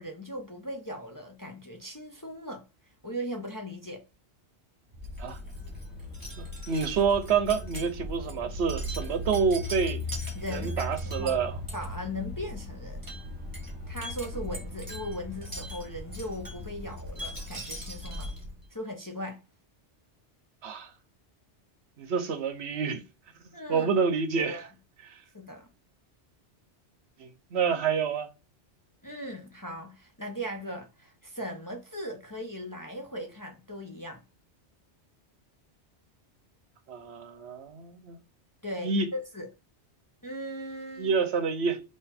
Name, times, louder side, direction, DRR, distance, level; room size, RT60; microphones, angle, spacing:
voice 1, 0.0-2.6 3.0-4.0 10.3-11.4 11.7-13.0 13.9-18.3 18.7-19.4 23.5-23.9 24.5-24.7 25.3-25.7 29.0-34.2 38.6-39.5 40.2-41.2, equal, 20° left, 0.6 m, -38 dB
Wind chime, 4.9-18.7, left 1 dB, 20° right, 1.7 m, -38 dB
voice 2, 6.4-10.0 10.5-11.6 20.6-20.9 22.0-23.0 23.7-24.6 25.1-25.2 27.2-28.3 36.9-38.2 38.8-39.1 41.0-41.8, right 6 dB, 70° right, 1.0 m, -28 dB
3.9 x 2.9 x 4.3 m
omnidirectional pair, 1.2 m